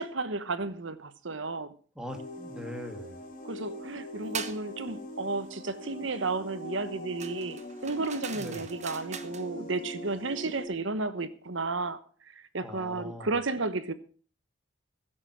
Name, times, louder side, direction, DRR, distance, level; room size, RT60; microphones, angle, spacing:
voice 1, 0.0-1.7 3.4-12.0 12.3-13.9, right 3 dB, 65° right, 1.2 m, -33 dB
voice 2, 2.0-3.2 8.3-8.7 12.6-13.3, equal, 5° right, 2.2 m, -41 dB
sound 1, 2.1-10.7, left 1 dB, 45° left, 3.4 m, -42 dB
sound 2, 4.3-4.6 7.2-9.5, right 7 dB, 35° right, 1.1 m, -41 dB
16.0 x 7.8 x 6.2 m
head